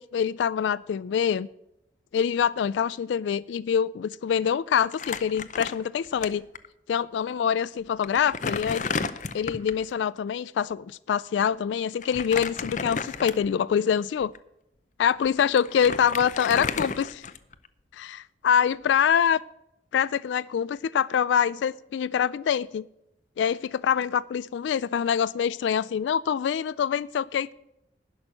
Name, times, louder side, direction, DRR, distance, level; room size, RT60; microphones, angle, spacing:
voice 1, 0.0-1.5 2.1-6.4 6.9-8.8 9.3-14.3 15.0-17.2 17.9-18.2 18.4-19.4 19.9-22.9 23.4-27.5, left 8 dB, 85° left, 20 dB, 0.3 m, -25 dB
Crumpling crinkling, 4.9-6.3 6.5-6.7 7.5-7.6 8.0-9.8 12.0-13.6 14.2-14.4 15.2-15.3 15.6-17.7, left 5 dB, 40° left, 0.6 m, -32 dB
11.0 x 6.2 x 8.6 m, 0.83 s
head